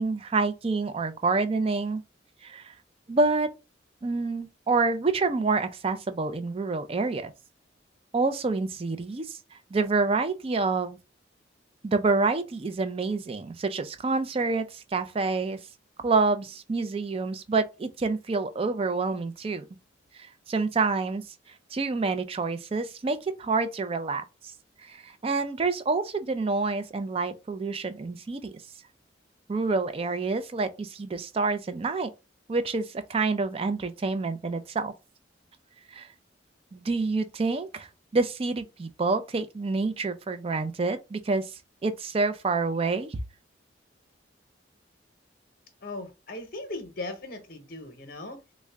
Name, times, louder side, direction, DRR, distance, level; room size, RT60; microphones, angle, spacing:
voice 1, 0.0-2.0 2.4-2.7 3.1-3.5 4.0-7.3 8.1-9.4 9.7-11.0 11.8-15.6 16.0-19.6 20.2-21.2 21.7-24.2 24.8-28.5 29.5-32.1 32.5-34.9 35.9-36.1 36.7-41.5 41.8-43.2, right 3 dB, 30° right, 0.4 m, -27 dB
voice 2, 45.8-48.4, left 2 dB, 50° left, 0.8 m, -38 dB
3.6 x 2.1 x 3.2 m
head